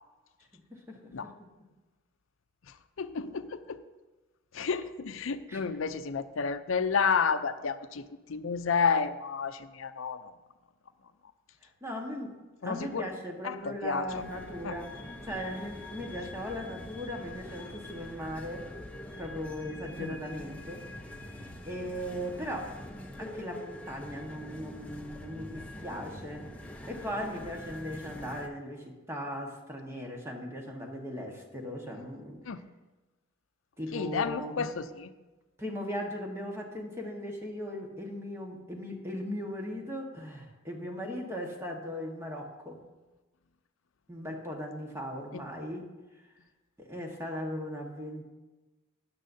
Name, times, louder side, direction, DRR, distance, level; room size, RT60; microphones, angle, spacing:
voice 1, 0.7-1.3 5.5-5.6 11.6-12.4 12.6-14.9 15.2-18.7 19.2-20.9 21.6-22.8 23.2-26.5 26.9-32.4 33.8-34.7 35.6-42.8 44.1-45.9 46.8-48.2, equal, 15° right, 0 dB, 1.4 m, -38 dB
voice 2, 3.0-3.8 4.5-8.0 8.3-10.3 12.6-13.1 13.4-14.3 14.6-14.8 20.0-20.2 32.5-32.6 33.9-35.1 45.3-45.4, left 5 dB, 80° left, 11 dB, 0.6 m, -31 dB
sound 1, 14.1-28.5, left 1 dB, 5° left, 0.8 m, -44 dB
13.0 x 10.0 x 2.7 m, 1.2 s
head